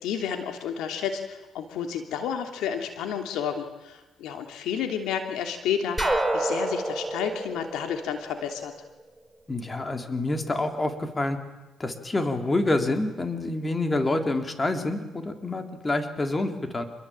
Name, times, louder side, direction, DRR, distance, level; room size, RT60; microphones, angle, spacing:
voice 1, 0.0-8.7, left 8 dB, 90° left, 5 dB, 3.0 m, -31 dB
sound 1, 6.0-8.8, right 1 dB, 5° right, 5.0 m, -28 dB
voice 2, 9.5-11.4 11.8-16.8, left 2 dB, 25° left, 6 dB, 3.7 m, -27 dB
28.0 x 22.0 x 8.9 m, 1.1 s
cardioid pair, 90°, 0 cm